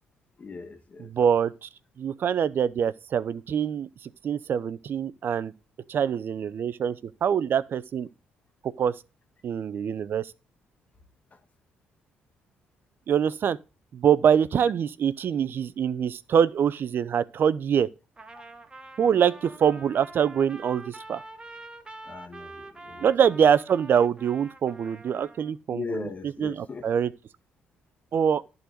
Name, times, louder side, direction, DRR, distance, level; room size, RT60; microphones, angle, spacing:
voice 1, 0.4-1.1 11.3-11.4 22.0-23.1 25.7-26.8, left 4 dB, 35° left, 1.6 m, -38 dB
voice 2, 1.0-1.7 2.0-5.5 5.9-8.1 8.8-8.9 9.4-10.3 13.1-13.6 13.9-17.9 19.0-21.2 23.0-26.1 26.4-27.1 28.1-28.4, right 8 dB, 55° right, 0.6 m, -24 dB
Trumpet, 18.2-25.5, right 2 dB, 20° right, 1.3 m, -45 dB
11.0 x 4.0 x 6.5 m
supercardioid pair, 70°, 4 cm